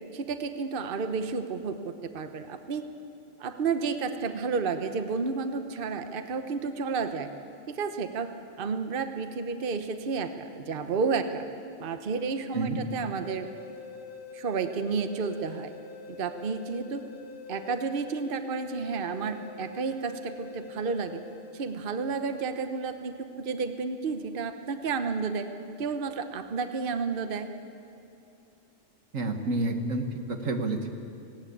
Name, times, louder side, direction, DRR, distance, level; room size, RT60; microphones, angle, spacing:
voice 1, 0.1-2.8 3.4-7.3 7.7-8.3 8.6-11.4 11.8-13.5 14.3-15.7 16.1-17.0 17.5-21.2 21.5-25.5 25.8-27.5, right 5 dB, 45° right, 8 dB, 1.0 m, -31 dB
sound 1, 13.1-22.0, left 5 dB, 10° left, 2.3 m, -45 dB
voice 2, 29.1-30.9, right 2 dB, 80° right, 5 dB, 1.9 m, -29 dB
18.5 x 17.5 x 8.6 m, 2.6 s
omnidirectional pair, 1.3 m